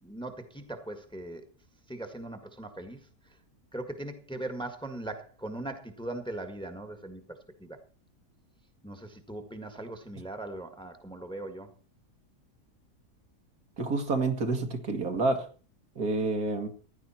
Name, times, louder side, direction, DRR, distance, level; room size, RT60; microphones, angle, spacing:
voice 1, 0.0-1.4 1.9-3.0 3.7-7.8 8.8-11.7, right 2 dB, 5° left, 7 dB, 1.7 m, -39 dB
voice 2, 13.8-15.5 16.0-16.7, right 3 dB, 70° right, 6 dB, 2.3 m, -28 dB
16.0 x 11.5 x 4.4 m, 0.37 s
omnidirectional pair, 1.6 m